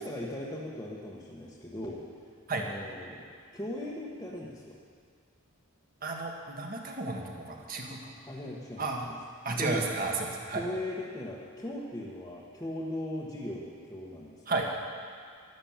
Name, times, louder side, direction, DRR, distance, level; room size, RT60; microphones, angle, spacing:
voice 1, 0.0-2.0 2.5-3.2 3.5-4.8 8.2-9.2 9.5-9.9 10.5-14.5, left 1 dB, 15° left, -7 dB, 1.3 m, -38 dB
voice 2, 6.0-8.1 8.8-9.1 9.4-10.6 14.5-14.7, right 3 dB, 40° right, 1 dB, 1.7 m, -32 dB
12.0 x 11.5 x 7.4 m, 2.1 s
head